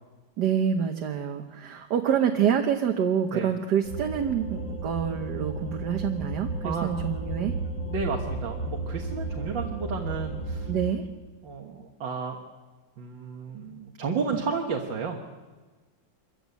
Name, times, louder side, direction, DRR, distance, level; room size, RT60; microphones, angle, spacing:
voice 1, 0.4-7.5 10.7-11.1, right 8 dB, 65° right, 4 dB, 1.6 m, -27 dB
sound 1, 3.8-10.9, right 2 dB, 45° left, 3.7 m, -33 dB
voice 2, 7.9-10.7 11.4-12.4 13.0-15.2, right 5 dB, 80° right, 2 dB, 2.2 m, -32 dB
25.0 x 14.5 x 8.3 m, 1.4 s
omnidirectional pair, 2.0 m